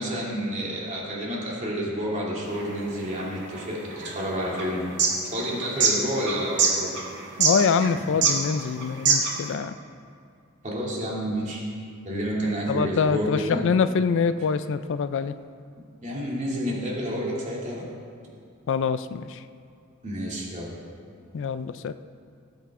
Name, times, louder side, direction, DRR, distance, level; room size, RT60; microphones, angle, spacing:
voice 1, 0.0-6.9 10.6-11.6 12.0-13.6 16.0-17.9 20.0-20.7, equal, 35° right, -4 dB, 2.7 m, -29 dB
sound 1, 2.5-9.5, right 5 dB, 55° right, 1.7 m, -25 dB
voice 2, 7.4-9.8 12.7-15.3 18.7-19.4 21.3-21.9, left 5 dB, 60° left, 12 dB, 0.4 m, -25 dB
18.0 x 8.1 x 3.7 m, 2.3 s
head